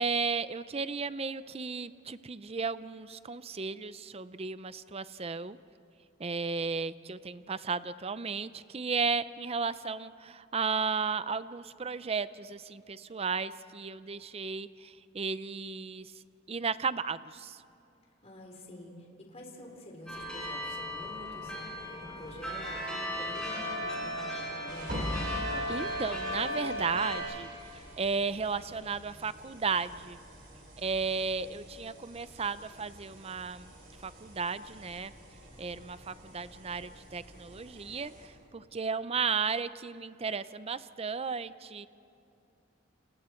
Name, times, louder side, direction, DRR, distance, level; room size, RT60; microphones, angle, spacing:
voice 1, 0.0-5.6 6.2-16.1 16.5-17.6 25.7-27.5 28.0-30.2 30.8-33.7 34.0-35.1 35.6-41.9, right 5 dB, 30° right, 14 dB, 0.6 m, -34 dB
voice 2, 18.2-25.0, left 1 dB, 30° left, 1 dB, 3.7 m, -47 dB
sound 1, 20.1-27.2, equal, 5° left, 7.6 m, -36 dB
sound 2, 24.7-38.3, equal, 45° right, 6.6 m, -45 dB
29.5 x 28.5 x 4.5 m, 2.6 s
head